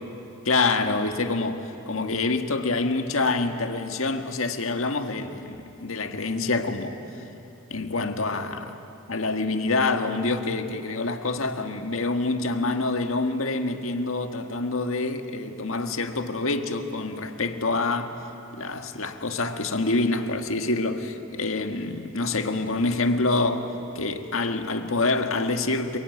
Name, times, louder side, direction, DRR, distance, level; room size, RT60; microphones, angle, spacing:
voice 1, 0.4-7.0 7.7-8.8 9.1-18.2 18.6-23.7 23.9-26.0, left 3 dB, 75° left, 1.7 m, -26 dB
29.0 x 21.5 x 9.5 m
head